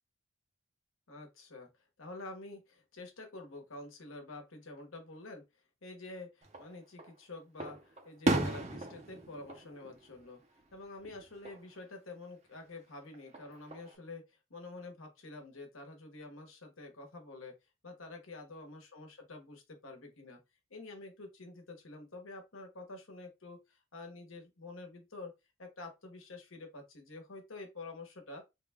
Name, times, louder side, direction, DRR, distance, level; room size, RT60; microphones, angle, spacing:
voice 1, 1.1-5.5 5.8-10.4 10.7-17.5 17.8-20.4 20.7-25.3 25.6-28.4, left 2 dB, 75° left, 1.2 m, -48 dB
Fireworks, 6.4-7.1 7.6-10.7 11.0-11.6 13.1-14.0, right 2 dB, 30° right, 0.6 m, -36 dB
3.5 x 2.3 x 3.5 m
head